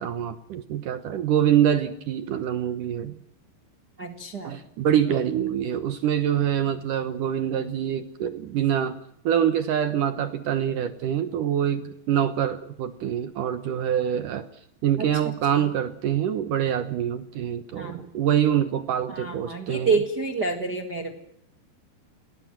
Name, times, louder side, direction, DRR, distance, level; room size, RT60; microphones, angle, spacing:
voice 1, 0.0-3.2 4.4-9.0 9.2-14.5 14.8-20.0, right 9 dB, 65° right, 11 dB, 2.2 m, -25 dB
voice 2, 4.0-4.5 15.0-15.1 17.7-18.0 19.1-21.2, right 4 dB, 40° right, 6 dB, 1.5 m, -28 dB
29.0 x 19.5 x 7.5 m, 0.73 s
omnidirectional pair, 5.0 m